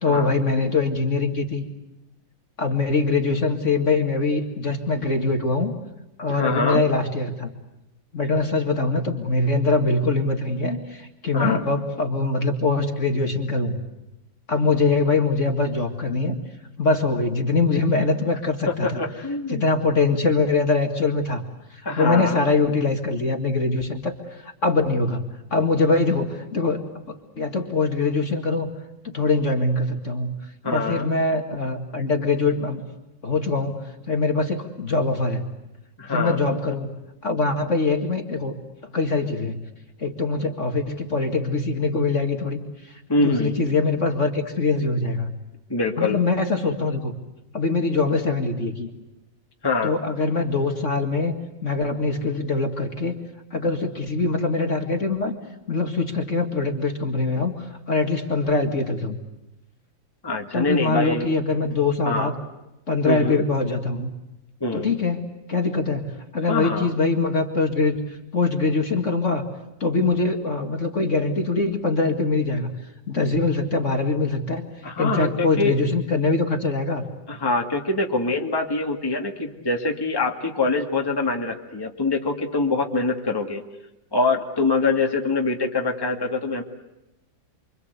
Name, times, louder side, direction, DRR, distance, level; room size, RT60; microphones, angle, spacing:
voice 1, 0.0-1.6 2.6-5.7 6.2-7.5 8.1-13.8 14.5-16.4 16.8-19.0 19.5-21.4 21.7-25.2 25.5-28.7 29.0-30.3 30.7-32.9 33.2-35.5 36.1-36.9 37.2-38.6 38.9-39.6 40.0-45.3 46.0-47.1 47.5-48.9 49.8-51.4 51.6-53.1 53.5-55.3 55.7-59.2 60.5-62.3 62.9-64.1 64.7-69.4 69.8-72.7 73.1-74.6 75.0-77.0, left 3 dB, 40° left, 4 dB, 2.3 m, -23 dB
voice 2, 6.3-6.8 11.3-11.6 18.7-19.6 21.9-22.4 30.6-31.1 36.0-36.4 43.1-43.5 45.7-46.2 49.6-49.9 60.2-61.3 62.0-62.3 63.0-63.4 64.6-64.9 66.5-66.9 74.8-75.8 77.3-83.6 84.1-86.6, left 3 dB, 10° left, 2 dB, 2.0 m, -24 dB
29.0 x 24.5 x 8.2 m, 0.93 s
omnidirectional pair, 2.1 m